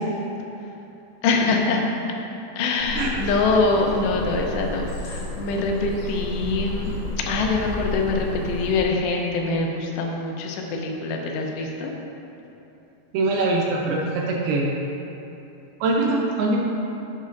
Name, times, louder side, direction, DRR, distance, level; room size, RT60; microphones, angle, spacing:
voice 1, 1.2-1.8 2.6-6.9 7.3-11.9, left 3 dB, 85° left, 1 dB, 2.9 m, -24 dB
sound 1, 2.8-8.8, left 1 dB, 55° left, 2.6 m, -32 dB
voice 2, 13.1-14.7 15.8-16.6, right 2 dB, 75° right, -1 dB, 2.4 m, -22 dB
10.5 x 8.4 x 2.6 m, 2.9 s
omnidirectional pair, 4.9 m